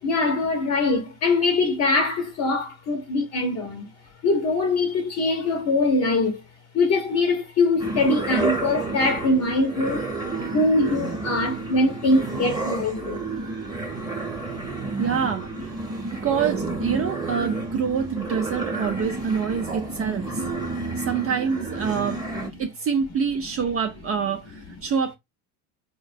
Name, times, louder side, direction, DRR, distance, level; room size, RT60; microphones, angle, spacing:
voice 1, 0.0-3.9 4.2-6.4 6.7-10.0 10.5-13.2 17.2-17.3 24.7-24.8, left 2 dB, 40° left, 0.8 m, -23 dB
sound 1, 7.8-22.5, right 3 dB, 10° right, 1.0 m, -30 dB
voice 2, 15.0-15.8 16.1-20.4 21.0-22.2 22.6-25.1, right 7 dB, 35° right, 0.5 m, -26 dB
3.7 x 2.2 x 2.5 m
supercardioid pair, 95°, 42 cm